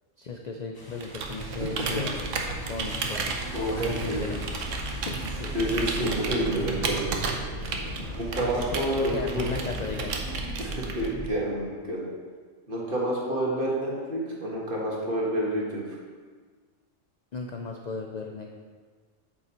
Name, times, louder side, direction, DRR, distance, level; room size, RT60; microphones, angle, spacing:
voice 1, 0.2-3.3 3.8-4.4 5.0-5.6 8.0-8.1 8.4-8.5 9.1-10.1 17.3-18.5, left 4 dB, 55° left, 1 dB, 0.4 m, -36 dB
sound 1, 0.7-6.9, left 1 dB, 20° left, 0.7 m, -45 dB
Computer keyboard, 1.0-11.3, right 4 dB, 70° right, 1.1 m, -34 dB
sound 2, 1.2-11.3, right 1 dB, 85° left, 1.9 m, -37 dB
voice 2, 3.5-4.3 5.5-7.1 8.2-9.4 10.6-12.1 12.7-15.9, right 1 dB, 40° right, -4 dB, 1.8 m, -29 dB
8.4 x 6.7 x 3.0 m, 1.5 s
omnidirectional pair, 1.4 m